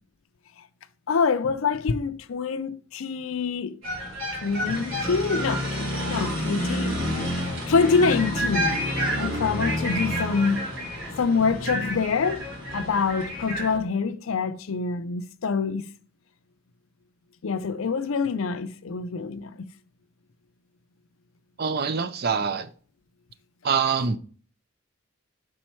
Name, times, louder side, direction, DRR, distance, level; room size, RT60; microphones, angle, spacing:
voice 1, 1.1-3.8 4.4-6.9 7.7-8.8 9.2-10.6 11.2-12.4 12.7-15.8 17.4-19.7, left 5 dB, 75° left, 0.5 m, -25 dB
sound 1, 3.8-13.8, equal, 90° right, 3.4 m, -29 dB
voice 2, 21.6-22.7 23.6-24.2, right 5 dB, 50° right, 0.5 m, -24 dB
6.3 x 4.4 x 4.4 m
head